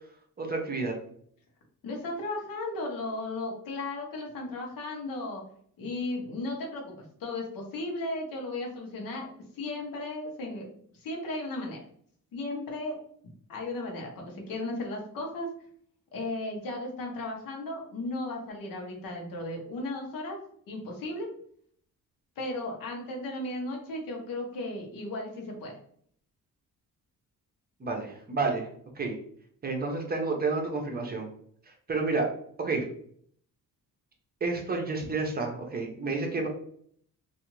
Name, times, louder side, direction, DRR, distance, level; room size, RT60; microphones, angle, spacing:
voice 1, 0.4-0.9 27.8-28.7 29.0-29.2 29.6-31.3 31.9-32.3 32.6-32.8 34.4-36.5, right 3 dB, 30° right, 2 dB, 0.6 m, -30 dB
voice 2, 1.8-5.4 5.8-9.3 9.5-10.7 11.0-11.8 12.3-13.0 13.5-15.5 16.1-20.4 20.7-21.3 22.4-25.8, left 2 dB, 80° left, 0 dB, 0.9 m, -35 dB
2.5 x 2.4 x 3.0 m, 0.62 s
cardioid pair, 120°, 34 cm